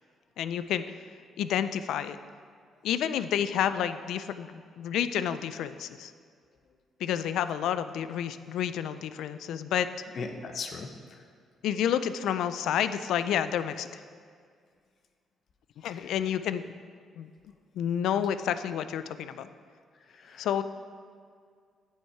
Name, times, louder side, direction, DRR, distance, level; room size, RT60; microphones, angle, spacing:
voice 1, 0.4-0.8 1.4-2.2 2.8-6.1 7.0-9.9 11.6-13.9 15.8-16.7 17.2-17.3 17.7-19.5 20.4-20.6, left 9 dB, 80° left, 12 dB, 0.4 m, -29 dB
voice 2, 10.1-11.3 15.8-16.2 19.9-20.6, left 4 dB, 55° left, 5 dB, 0.9 m, -40 dB
9.7 x 6.4 x 4.6 m, 2.1 s
cardioid pair, 90°, 0 cm